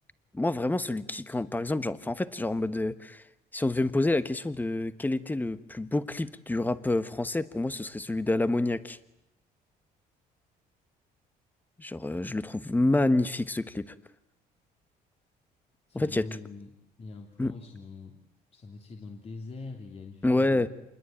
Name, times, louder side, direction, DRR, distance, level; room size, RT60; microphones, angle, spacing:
voice 1, 0.3-3.2 3.5-9.0 11.8-13.9 15.9-16.3 17.4-17.5 20.2-20.7, left 2 dB, 10° left, 13 dB, 1.3 m, -28 dB
voice 2, 15.9-16.7 17.0-18.2 18.5-20.7, left 3 dB, 35° left, 2 dB, 3.0 m, -43 dB
27.5 x 21.5 x 9.0 m, 0.86 s
cardioid pair, 110°, 17 cm